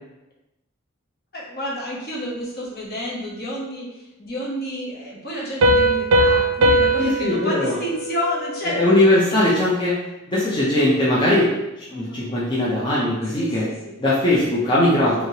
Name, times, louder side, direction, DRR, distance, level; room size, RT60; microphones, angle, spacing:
voice 1, 1.3-3.9 4.2-8.8 11.9-12.2 13.3-14.0, left 1 dB, 50° left, -5 dB, 0.9 m, -30 dB
Piano, 5.6-9.0, right 1 dB, 90° right, 0.5 m, -20 dB
voice 2, 7.0-7.8 8.6-9.9 10.3-11.5 11.9-13.6 14.0-15.3, left 1 dB, 25° left, -7 dB, 0.5 m, -19 dB
3.1 x 2.8 x 2.7 m, 0.99 s
head